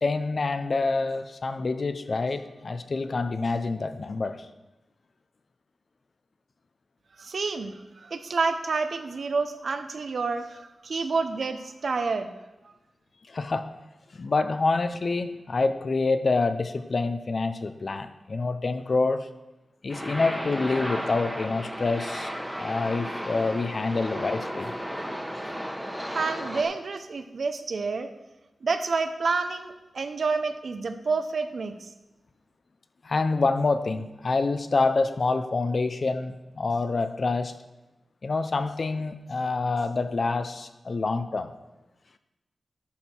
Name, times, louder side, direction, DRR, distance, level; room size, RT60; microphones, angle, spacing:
voice 1, 0.0-4.5 13.3-13.7 14.1-19.3 19.8-22.3 22.6-24.7 33.0-37.5 38.2-41.5, left 3 dB, 45° left, 10 dB, 0.6 m, -27 dB
voice 2, 7.2-12.3 26.0-28.1 28.6-31.7, right 4 dB, 60° right, 8 dB, 0.7 m, -29 dB
sound 1, 19.9-26.6, equal, 5° right, 1.2 m, -34 dB
11.5 x 6.4 x 4.5 m, 1.0 s
wide cardioid pair, 125°, 0 cm